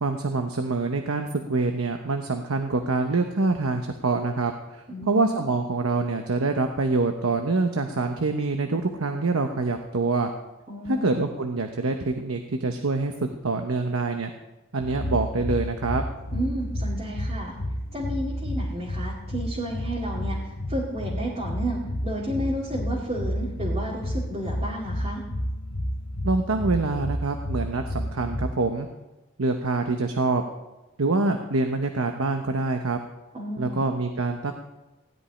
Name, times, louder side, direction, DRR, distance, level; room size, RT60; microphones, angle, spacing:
voice 1, 0.0-10.3 10.8-14.3 14.7-16.0 26.2-28.9 29.4-30.4 31.0-33.0 33.6-34.5, right 3 dB, 80° right, 5 dB, 1.0 m, -25 dB
voice 2, 4.9-5.4 10.7-11.2 16.3-17.5 17.9-25.2 33.3-33.8, equal, 30° right, -5 dB, 2.4 m, -32 dB
sound 1, 14.8-28.5, equal, 65° left, 1.3 m, -31 dB
16.5 x 5.4 x 9.9 m, 1.0 s
head